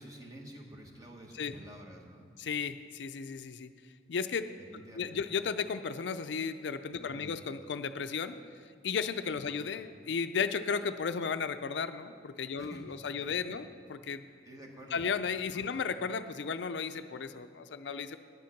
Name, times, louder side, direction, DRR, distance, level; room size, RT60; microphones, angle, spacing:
voice 1, 0.0-2.3 4.6-5.1 7.0-7.4 9.5-9.7 12.6-12.8 14.4-15.0 15.5-15.8, right 1 dB, 20° right, 1 dB, 1.3 m, -50 dB
voice 2, 2.4-3.7 4.1-4.5 5.0-8.3 8.8-14.2 14.9-18.2, left 5 dB, 70° left, 10 dB, 0.4 m, -34 dB
10.5 x 9.4 x 5.9 m, 2.1 s
head